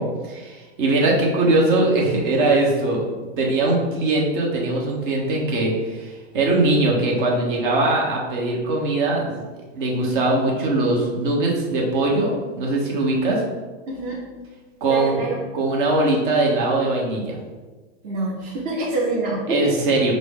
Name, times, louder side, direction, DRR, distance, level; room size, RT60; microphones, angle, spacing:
voice 1, 0.0-3.0 3.4-9.4 9.7-13.4 14.8-15.2 15.5-17.4 19.5-20.1, right 2 dB, 55° right, -2 dB, 1.1 m, -21 dB
voice 2, 13.9-14.2 14.9-15.4 18.0-19.7, right 2 dB, 25° right, -4 dB, 0.5 m, -26 dB
5.0 x 2.1 x 3.5 m, 1.3 s
supercardioid pair, 145°, 32 cm